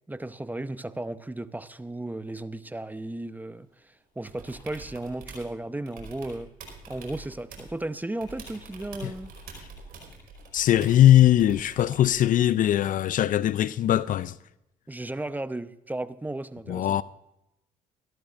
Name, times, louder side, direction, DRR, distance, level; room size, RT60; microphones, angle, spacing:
voice 1, 0.1-6.5 6.9-9.3 14.9-17.0, right 2 dB, 10° right, 0.8 m, -35 dB
sound 1, 4.3-5.5 5.9-7.8 8.2-12.2 14.1-14.2, right 3 dB, 65° right, 4.8 m, -45 dB
voice 2, 10.5-14.4 16.7-17.0, left 12 dB, 55° left, 0.5 m, -20 dB
25.0 x 12.5 x 2.5 m
hypercardioid pair, 55°, 16 cm